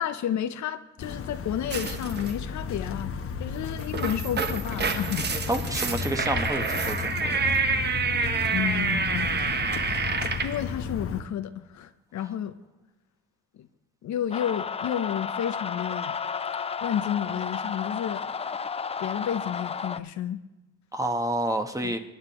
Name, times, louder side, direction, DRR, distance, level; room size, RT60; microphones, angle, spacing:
voice 1, 0.0-3.1 3.4-5.3 8.5-9.3 10.4-12.6 13.6-13.7 14.0-16.2 16.8-18.3 19.0-20.4 21.8-21.9, left 10 dB, 70° left, 10 dB, 0.7 m, -31 dB
sound 1, 1.0-11.2, left 6 dB, 50° left, 1.0 m, -34 dB
sound 2, 1.7-2.3 3.7-10.6, right 5 dB, 35° right, 1.0 m, -28 dB
voice 2, 5.5-7.4 20.9-22.0, right 1 dB, 10° right, 6 dB, 1.2 m, -29 dB
sound 3, 14.3-20.0, left 6 dB, 20° left, 0.4 m, -32 dB
21.5 x 9.8 x 3.0 m, 1.1 s
cardioid pair, 90°, 30 cm